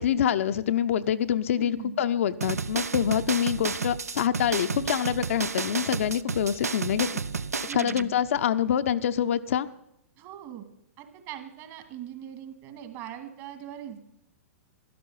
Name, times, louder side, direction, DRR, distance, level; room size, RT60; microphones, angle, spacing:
voice 1, 0.0-7.1 7.7-9.7, left 9 dB, 60° left, 10 dB, 0.6 m, -26 dB
voice 2, 1.5-2.0 7.7-8.1 10.2-10.6 11.0-14.0, right 10 dB, 40° right, 7 dB, 2.2 m, -41 dB
sound 1, 2.4-8.0, right 5 dB, 85° right, 0.5 m, -31 dB
12.0 x 12.0 x 5.6 m, 0.78 s
figure-of-eight pair, 110°, 8 cm